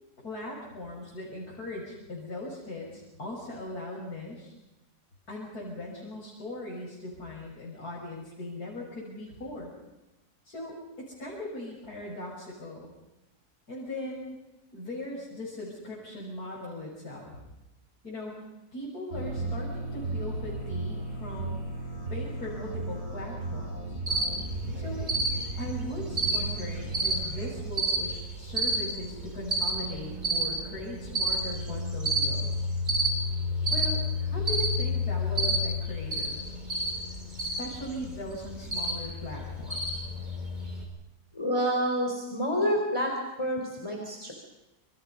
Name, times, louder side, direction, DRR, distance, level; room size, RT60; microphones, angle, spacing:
voice 1, 0.2-4.5 5.3-9.7 10.4-12.9 13.7-14.4 14.7-17.4 18.0-18.4 18.7-21.6 22.1-24.0 24.7-25.1 25.6-32.6 33.7-36.5 37.4-40.1, left 1 dB, 70° left, -4 dB, 6.7 m, -39 dB
sound 1, 19.1-27.6, right 2 dB, 50° right, 7.4 m, -36 dB
Cricket, 24.1-40.8, equal, 25° right, 5.3 m, -30 dB
voice 2, 41.3-43.1 43.4-44.3, equal, 15° left, 1 dB, 4.0 m, -28 dB
28.0 x 27.0 x 5.5 m, 1.0 s
omnidirectional pair, 1.7 m